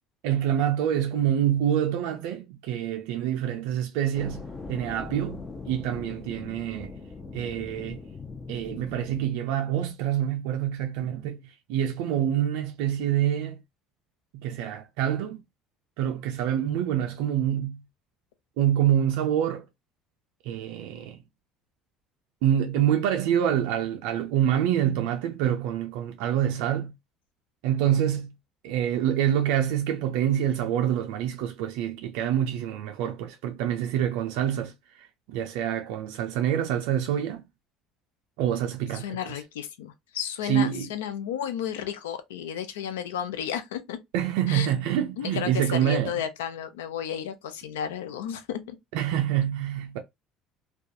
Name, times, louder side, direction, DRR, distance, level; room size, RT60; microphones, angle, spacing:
voice 1, 0.2-4.4 4.7-7.0 7.3-8.0 8.5-13.6 14.3-15.4 16.0-17.8 18.6-19.6 20.4-21.2 22.4-26.9 27.6-28.3 28.6-37.4 38.4-39.1 40.4-40.9 44.1-46.1 48.9-50.0, right 10 dB, 75° right, 0.3 m, -26 dB
sound 1, 4.1-9.2, left 4 dB, 30° left, 0.6 m, -40 dB
voice 2, 38.9-44.0 44.5-44.7 45.2-48.8, left 9 dB, 90° left, 0.4 m, -33 dB
2.3 x 2.2 x 2.5 m
supercardioid pair, 80°, 0 cm